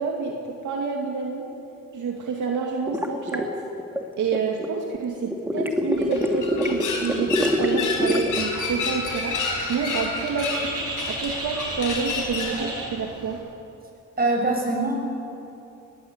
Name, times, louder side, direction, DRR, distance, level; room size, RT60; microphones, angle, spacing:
voice 1, 0.0-1.5 1.9-3.5 4.2-9.4 9.7-10.8 11.1-13.4, right 5 dB, 70° right, 1 dB, 2.3 m, -28 dB
sound 1, 2.9-4.7 5.3-8.4, equal, 5° right, 2.4 m, -25 dB
sound 2, 5.9-12.6, left 4 dB, 75° left, 4.8 m, -30 dB
Bird, 8.3-13.4, right 2 dB, 50° right, 7.6 m, -34 dB
voice 2, 14.2-14.9, right 2 dB, 30° right, 1 dB, 6.3 m, -23 dB
20.5 x 20.0 x 8.1 m, 2.7 s
cardioid pair, 85°, 31 cm